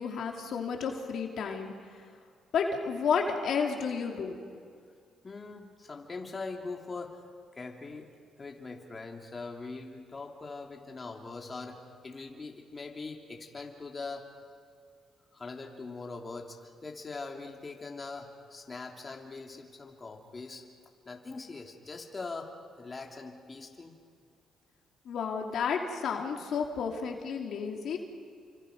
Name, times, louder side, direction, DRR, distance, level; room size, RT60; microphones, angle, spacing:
voice 1, 0.0-1.7 2.5-4.4 25.1-28.0, left 6 dB, 70° left, 2 dB, 2.8 m, -31 dB
voice 2, 5.2-7.2 7.5-8.1 8.4-14.3 15.3-20.6 21.0-24.0, left 3 dB, 30° left, 1 dB, 2.9 m, -42 dB
30.0 x 25.5 x 5.3 m, 2.2 s
cardioid pair, 90°, 0 cm